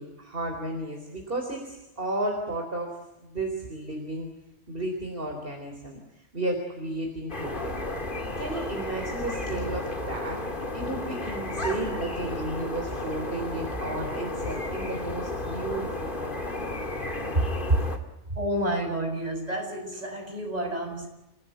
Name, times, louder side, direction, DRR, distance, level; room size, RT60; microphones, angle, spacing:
voice 1, 0.0-2.9 3.2-4.3 4.7-7.9 8.4-10.4 10.7-16.3 17.3-17.8 18.3-18.4, right 2 dB, 50° right, 2 dB, 4.1 m, -32 dB
sound 1, 7.3-18.0, left 2 dB, 45° left, 2.7 m, -33 dB
voice 2, 18.4-21.1, right 1 dB, 35° right, 2 dB, 7.0 m, -30 dB
29.0 x 17.0 x 9.1 m, 0.97 s
omnidirectional pair, 1.2 m